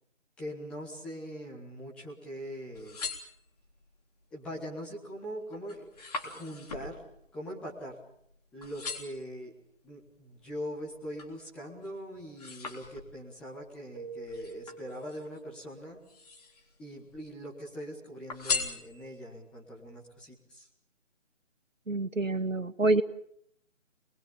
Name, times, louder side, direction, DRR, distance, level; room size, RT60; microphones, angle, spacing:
voice 1, 0.4-3.0 4.3-5.9 6.2-7.0 7.3-8.0 8.5-9.5 9.8-16.0 16.8-20.7, equal, ahead, -4 dB, 1.3 m, -42 dB
sound 1, 2.6-3.9 4.4-4.9 5.2-8.3 8.6-9.3 9.9-11.4 11.8-13.4 14.3-15.4 16.0-16.8 17.1-17.8 18.3-19.4 19.9-20.0, left 4 dB, 30° left, 3.7 m, -39 dB
Keyboard (musical), 13.9-16.0, right 4 dB, 40° right, 2.7 m, -46 dB
voice 2, 21.9-23.0, right 2 dB, 90° right, 11 dB, 1.8 m, -27 dB
26.5 x 22.0 x 7.1 m, 0.72 s
figure-of-eight pair, 155°, 38 cm